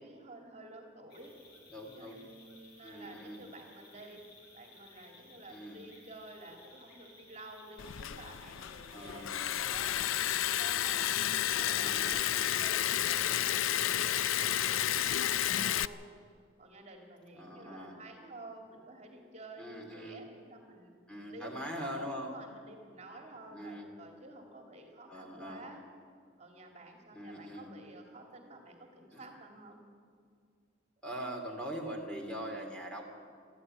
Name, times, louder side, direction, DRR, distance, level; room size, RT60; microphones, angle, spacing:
voice 1, 0.0-1.3 2.0-4.2 4.5-11.1 11.5-16.1 16.6-20.9 21.3-25.8 26.4-29.8, right 2 dB, 35° right, 3 dB, 2.4 m, -51 dB
sound 1, 1.1-15.5, left 2 dB, 50° left, 4.5 m, -58 dB
voice 2, 1.7-2.3 2.8-3.4 5.5-5.8 8.9-9.5 11.5-12.3 17.3-18.0 19.6-20.3 21.1-22.3 23.5-23.9 25.1-25.7 27.1-27.7 29.1-29.3 31.0-33.1, equal, 5° left, 1 dB, 2.5 m, -42 dB
Liquid, 7.8-15.9, left 11 dB, 80° left, 0.5 m, -31 dB
21.5 x 14.0 x 8.8 m, 2.2 s
head